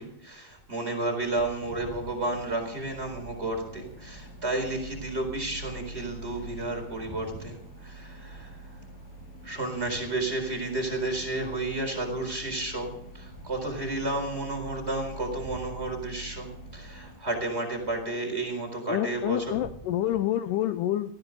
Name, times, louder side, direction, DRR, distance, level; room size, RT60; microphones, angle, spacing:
voice 1, 0.0-8.6 9.4-19.6, right 2 dB, 15° right, 3 dB, 4.1 m, -32 dB
sound 1, 1.7-17.2, right 2 dB, 45° left, 7.0 m, -45 dB
voice 2, 18.9-21.1, left 12 dB, 85° left, 11 dB, 1.8 m, -28 dB
19.0 x 16.0 x 4.0 m, 0.79 s
omnidirectional pair, 4.5 m